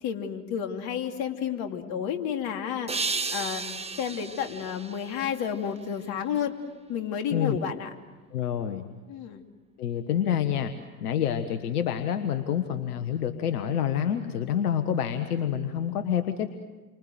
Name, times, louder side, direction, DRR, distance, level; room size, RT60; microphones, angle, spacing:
voice 1, 0.0-2.9 3.3-3.7 4.0-6.5 6.9-7.9 9.1-9.4, left 8 dB, 55° left, 5 dB, 3.0 m, -31 dB
sound 1, 2.9-6.0, right 4 dB, 15° right, 1.3 m, -34 dB
voice 2, 8.3-8.9 9.8-10.7 11.0-16.5, left 9 dB, 75° left, 8 dB, 1.5 m, -27 dB
29.5 x 25.0 x 7.8 m, 1.3 s
hypercardioid pair, 80°, 45 cm